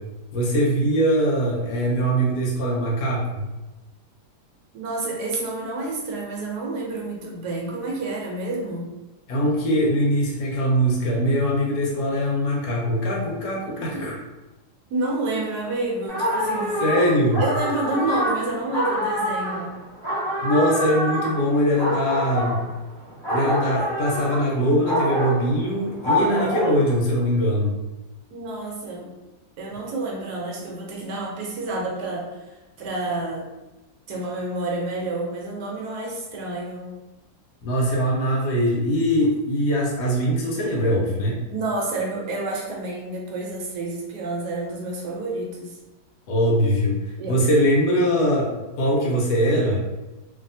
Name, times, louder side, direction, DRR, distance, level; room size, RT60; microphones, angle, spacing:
voice 1, 0.3-3.4 9.3-14.2 16.8-17.4 20.4-22.6 23.3-27.7 37.6-41.4 46.3-47.0 47.3-49.8, equal, 75° left, -2 dB, 1.2 m, -22 dB
voice 2, 4.7-9.0 13.9-14.1 14.9-16.8 17.4-19.8 28.3-29.1 29.6-32.4 32.8-33.5 34.1-37.0 41.5-45.8 47.2-47.4, right 2 dB, 70° right, -2 dB, 1.1 m, -29 dB
sound 1, 16.1-26.9, equal, 15° left, 1.2 m, -26 dB
2.7 x 2.7 x 2.6 m, 1.1 s
omnidirectional pair, 1.8 m